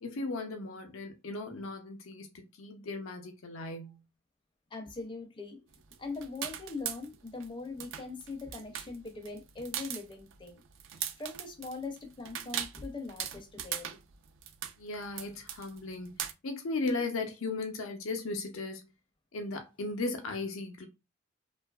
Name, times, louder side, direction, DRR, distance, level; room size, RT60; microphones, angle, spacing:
voice 1, 0.0-4.0 14.8-18.9 19.3-20.9, left 3 dB, 75° left, 0.5 m, -36 dB
voice 2, 4.7-10.6 11.2-14.0, left 3 dB, 25° left, 0.5 m, -41 dB
sound 1, 5.7-7.5 7.7-16.3, right 10 dB, 65° right, 0.3 m, -39 dB
2.7 x 2.3 x 2.2 m
head